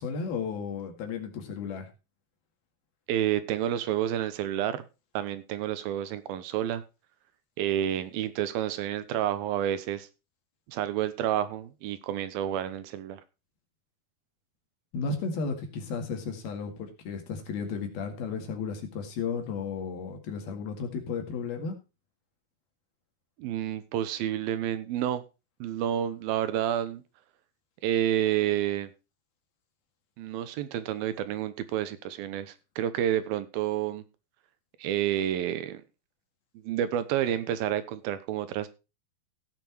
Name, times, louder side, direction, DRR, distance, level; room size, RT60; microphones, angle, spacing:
voice 1, 0.0-1.9 14.9-21.8, left 5 dB, 80° left, 4 dB, 3.9 m, -34 dB
voice 2, 3.1-4.8 5.1-6.8 7.6-10.1 10.7-13.2 23.4-25.2 25.6-27.0 27.8-28.9 30.2-34.0 34.8-35.8 36.5-38.7, right 11 dB, 80° right, 13 dB, 2.8 m, -29 dB
16.5 x 6.0 x 4.5 m, 0.29 s
omnidirectional pair, 4.3 m